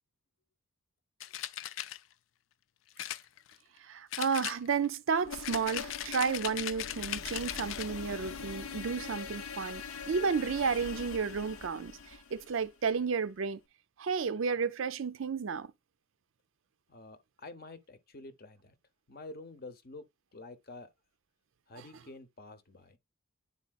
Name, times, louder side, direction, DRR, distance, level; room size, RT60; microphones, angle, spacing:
sound 1, 1.2-2.0 3.0-3.8 4.1-5.0 5.4-8.0, left 12 dB, 65° left, 0.4 m, -38 dB
voice 1, 3.8-13.6 14.0-15.7 21.8-21.9, right 5 dB, 65° right, 0.5 m, -32 dB
sound 2, 5.2-13.2, left 5 dB, 80° left, 0.7 m, -43 dB
voice 2, 16.9-18.7 19.1-20.0 20.3-20.9 21.7-23.0, left 2 dB, 45° left, 0.8 m, -48 dB
9.7 x 4.1 x 2.4 m
head